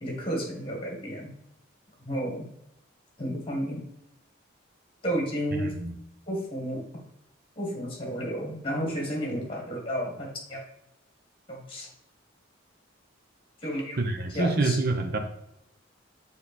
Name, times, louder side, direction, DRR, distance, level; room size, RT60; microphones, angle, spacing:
voice 1, 0.0-1.3 2.0-2.5 3.2-3.9 5.0-5.7 6.3-6.9 7.6-10.6 11.5-11.9 13.6-14.0 14.3-14.8, equal, 25° left, 0 dB, 1.6 m, -32 dB
voice 2, 5.5-6.0 14.0-15.2, right 2 dB, 50° right, 5 dB, 0.8 m, -27 dB
6.5 x 3.5 x 4.3 m, 0.79 s
head